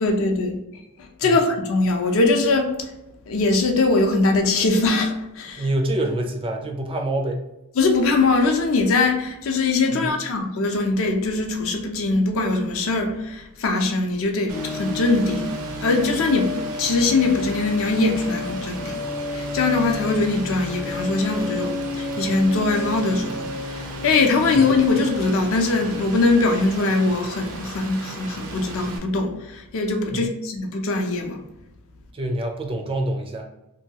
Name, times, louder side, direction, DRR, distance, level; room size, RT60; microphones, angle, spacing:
voice 1, 0.0-0.6 1.2-2.7 3.3-5.6 7.8-15.5 15.8-16.5 16.8-19.0 19.3-31.4, left 3 dB, 65° left, 3 dB, 0.5 m, -21 dB
voice 2, 5.6-7.4 9.9-10.2 24.5-24.7 30.1-30.3 32.1-33.5, right 1 dB, 25° right, 3 dB, 0.3 m, -26 dB
sound 1, 14.5-25.3, left 3 dB, 45° left, 0.9 m, -32 dB
Rain, 14.5-29.0, right 3 dB, 75° right, 0.5 m, -37 dB
2.8 x 2.2 x 2.7 m, 0.91 s
head